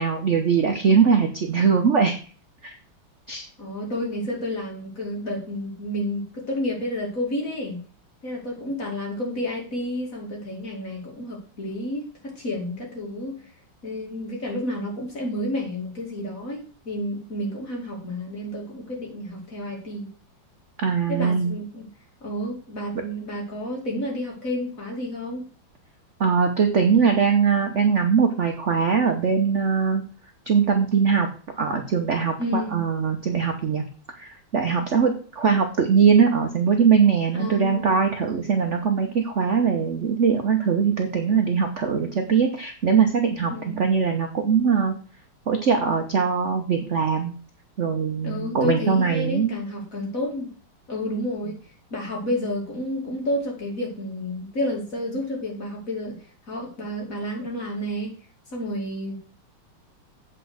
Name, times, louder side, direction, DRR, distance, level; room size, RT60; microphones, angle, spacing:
voice 1, 0.0-2.1 2.6-2.7 3.3-3.4 20.8-21.5 26.2-30.0 30.5-31.3 31.6-33.8 34.2-44.9 45.5-47.4 47.8-49.5, right 6 dB, 50° right, 4 dB, 0.9 m, -21 dB
voice 2, 3.3-7.8 8.2-13.4 13.8-20.1 21.1-21.9 22.2-25.4 32.4-32.8 37.3-37.9 43.5-43.9 48.2-50.5 50.9-51.6 51.9-56.2 56.5-58.1 58.5-59.2, left 1 dB, 40° left, -1 dB, 2.8 m, -30 dB
8.3 x 4.6 x 6.3 m, 0.39 s
omnidirectional pair, 2.3 m